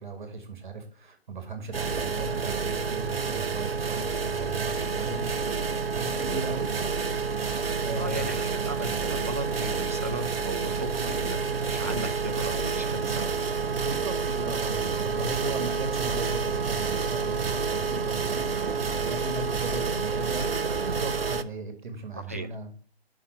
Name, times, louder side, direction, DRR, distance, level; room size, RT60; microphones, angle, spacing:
voice 1, 0.0-5.4 5.9-6.7 7.7-8.3 13.8-22.7, right 3 dB, 50° right, 7 dB, 2.0 m, -37 dB
sound 1, 1.7-21.4, right 5 dB, 65° right, 0.8 m, -29 dB
voice 2, 6.2-6.5 8.0-13.3 22.2-22.5, right 1 dB, 15° right, 5 dB, 0.4 m, -36 dB
8.4 x 6.0 x 5.8 m, 0.43 s
figure-of-eight pair, 135°, 31 cm